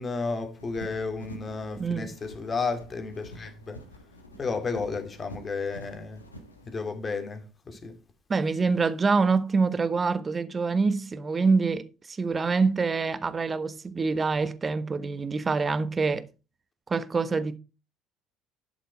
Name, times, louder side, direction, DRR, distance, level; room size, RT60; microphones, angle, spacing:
voice 1, 0.0-3.8 4.4-6.2 6.7-8.0, left 4 dB, 30° left, 2.7 m, -32 dB
sound 1, 0.6-6.7, equal, 90° left, 1.5 m, -47 dB
voice 2, 1.8-2.1 8.3-16.3 16.9-17.6, right 4 dB, 25° right, 1.2 m, -26 dB
12.0 x 6.8 x 4.7 m
figure-of-eight pair, 60°, 0 cm